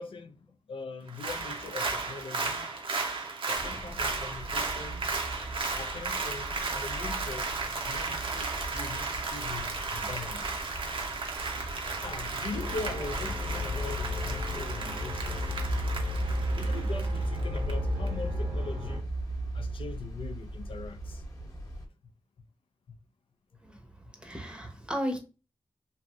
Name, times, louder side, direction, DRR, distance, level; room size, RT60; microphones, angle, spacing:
voice 1, 0.0-2.7 3.5-5.0 5.8-7.5 7.8-10.5 11.7-15.8 16.6-19.1 19.5-21.2 22.9-23.0, left 4 dB, 70° left, 0.4 m, -41 dB
Applause, 1.1-17.7 18.1-18.2, right 4 dB, 65° right, 0.6 m, -35 dB
sound 1, 3.5-21.9, right 2 dB, 35° left, 0.9 m, -37 dB
sound 2, 12.5-19.0, left 4 dB, 85° right, 1.0 m, -35 dB
voice 2, 23.6-25.2, equal, 10° right, 0.7 m, -36 dB
3.1 x 2.5 x 2.4 m
wide cardioid pair, 100°, 9 cm